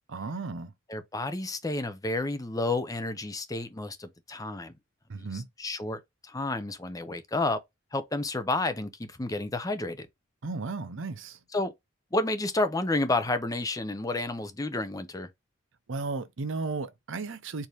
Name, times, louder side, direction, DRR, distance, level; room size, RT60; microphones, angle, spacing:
voice 1, 0.1-0.7 5.1-5.5 10.4-11.4 15.9-17.7, right 3 dB, 65° right, 0.6 m, -34 dB
voice 2, 0.9-4.7 5.2-7.6 7.9-10.1 11.5-11.7 12.1-15.3, left 2 dB, 15° left, 0.5 m, -30 dB
4.7 x 2.6 x 3.3 m
head